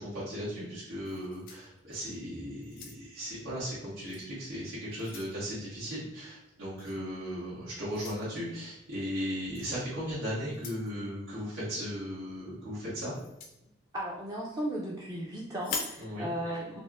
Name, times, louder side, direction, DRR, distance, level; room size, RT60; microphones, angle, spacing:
voice 1, 0.0-13.1 16.0-16.3, equal, 85° right, -12 dB, 1.2 m, -37 dB
sound 1, 1.0-2.2 2.6-3.3 4.1-4.3 4.7-5.4 6.8-7.0 7.9-8.2 9.5-9.7 10.5-10.9 13.1-13.6 15.6-16.0, left 4 dB, 45° left, 0.4 m, -41 dB
voice 2, 13.9-16.8, right 1 dB, 20° right, -5 dB, 0.4 m, -36 dB
4.1 x 2.0 x 2.4 m, 0.89 s
head